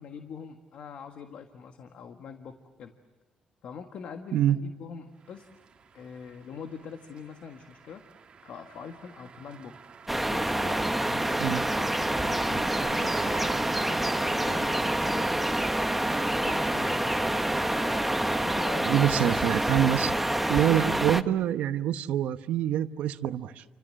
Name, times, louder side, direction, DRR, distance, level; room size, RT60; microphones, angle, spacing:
voice 1, 0.0-2.9 3.6-5.5 5.9-8.1 8.4-9.8 10.3-13.5 13.9-15.3 15.9-17.2 17.7-18.1 18.4-19.5, left 6 dB, 65° left, 6 dB, 1.6 m, -43 dB
sound 1, 5.2-18.2, right 6 dB, 45° right, 1.8 m, -46 dB
sound 2, 10.1-21.2, right 1 dB, 5° right, 0.8 m, -27 dB
voice 2, 18.8-20.1 20.5-23.6, right 11 dB, 90° right, 10 dB, 1.0 m, -25 dB
29.5 x 25.5 x 7.7 m, 1.2 s
cardioid pair, 130°, 2 cm